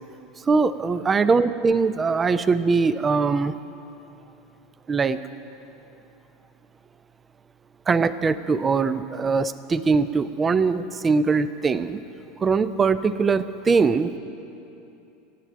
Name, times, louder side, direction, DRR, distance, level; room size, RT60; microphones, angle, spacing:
voice 1, 0.5-3.6 4.9-5.2 7.9-12.0 12.4-14.2, right 4 dB, 20° right, 14 dB, 0.5 m, -21 dB
15.0 x 9.2 x 7.2 m, 2.8 s
figure-of-eight pair, 80°, 0 cm